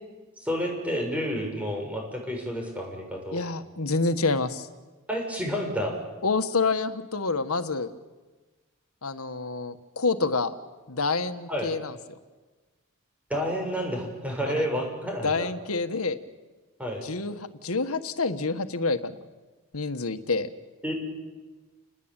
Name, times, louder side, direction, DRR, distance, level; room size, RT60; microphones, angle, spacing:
voice 1, 0.4-3.4 5.1-5.9 11.5-11.7 13.3-15.5 16.8-17.0 20.8-20.9, equal, 5° right, 1 dB, 6.8 m, -30 dB
voice 2, 3.3-4.7 6.2-7.9 9.0-10.5 10.9-12.2 14.5-14.6 15.2-16.2 17.0-19.2 19.7-20.5, left 3 dB, 85° left, 10 dB, 1.6 m, -28 dB
30.0 x 20.0 x 9.1 m, 1.3 s
head